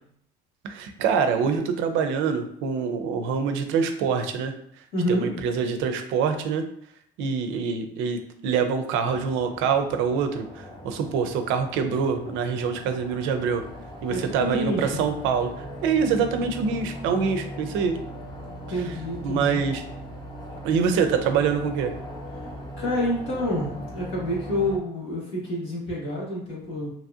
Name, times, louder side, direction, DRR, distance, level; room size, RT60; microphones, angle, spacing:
voice 1, 0.6-4.5 5.1-6.6 7.2-10.4 10.8-13.6 14.0-15.5 15.8-18.0 19.2-19.8 20.6-21.9, right 6 dB, 90° right, 7 dB, 0.4 m, -25 dB
voice 2, 4.9-5.3 14.1-15.0 18.7-19.7 22.8-26.9, left 1 dB, 75° left, -3 dB, 1.3 m, -28 dB
sound 1, 9.0-24.8, equal, 20° left, 0.7 m, -39 dB
2.9 x 2.7 x 2.4 m, 0.69 s
cardioid pair, 135°, 19 cm